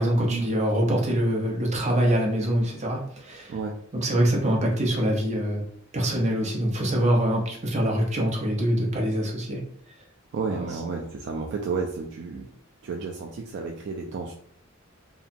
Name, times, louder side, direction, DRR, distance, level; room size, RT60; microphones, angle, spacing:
voice 1, 0.0-3.5 4.0-5.6 5.9-9.6, equal, 35° right, -1 dB, 0.7 m, -24 dB
voice 2, 10.3-12.5 12.8-14.3, right 4 dB, 60° right, 1 dB, 0.3 m, -31 dB
2.8 x 2.3 x 2.5 m, 0.64 s
head